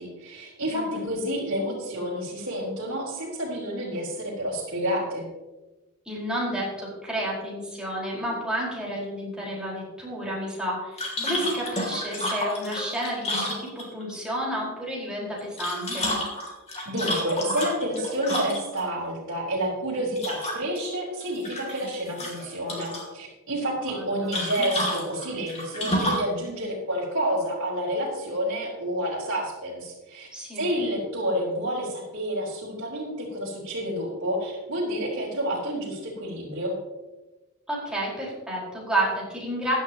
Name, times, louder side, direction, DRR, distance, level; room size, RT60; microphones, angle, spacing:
voice 1, 0.0-5.3 16.8-30.3 30.6-36.8, equal, 60° right, -6 dB, 3.8 m, -29 dB
voice 2, 0.7-1.1 6.0-16.1 23.9-24.3 30.3-30.7 37.7-39.8, right 1 dB, 5° right, -5 dB, 4.6 m, -31 dB
sound 1, 11.0-14.1 15.4-18.8 20.2-20.9 21.2-21.9 22.2-23.1 24.3-26.3, left 1 dB, 30° left, 2.8 m, -30 dB
15.5 x 11.0 x 2.9 m, 1.1 s
head